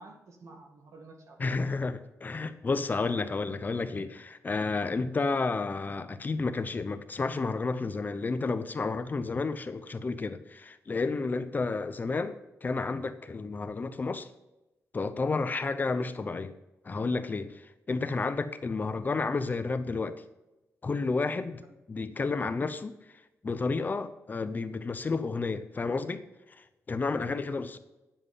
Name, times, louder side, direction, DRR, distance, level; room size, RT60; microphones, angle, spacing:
voice 1, 0.0-1.5 18.7-18.8 21.6-21.7 27.2-27.6, right 3 dB, 65° right, 3 dB, 1.9 m, -51 dB
voice 2, 1.4-12.4 12.6-14.3 14.9-16.5 16.8-20.2 20.8-21.6 21.9-23.0 23.4-26.3 26.6-27.8, left 3 dB, 35° left, 10 dB, 0.7 m, -31 dB
9.8 x 7.3 x 5.6 m, 0.98 s
wide cardioid pair, 115°, 6 cm